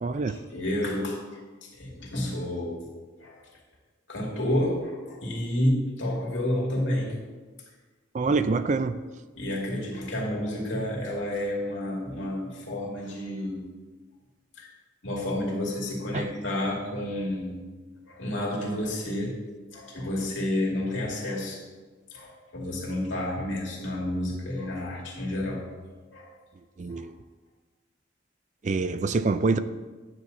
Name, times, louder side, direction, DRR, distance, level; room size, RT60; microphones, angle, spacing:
voice 1, 0.0-0.4 8.1-9.0 16.1-16.3 26.8-27.1 28.6-29.6, right 4 dB, 40° right, 12 dB, 0.3 m, -25 dB
voice 2, 0.5-1.2 1.6-2.9 3.2-3.4 4.1-7.2 8.2-8.3 9.4-13.7 14.6-14.7 15.0-17.6 18.1-19.4 19.7-21.6 22.1-25.7 26.1-26.3 27.0-27.1, left 1 dB, 75° left, -2 dB, 2.4 m, -30 dB
9.7 x 4.2 x 7.2 m, 1.3 s
head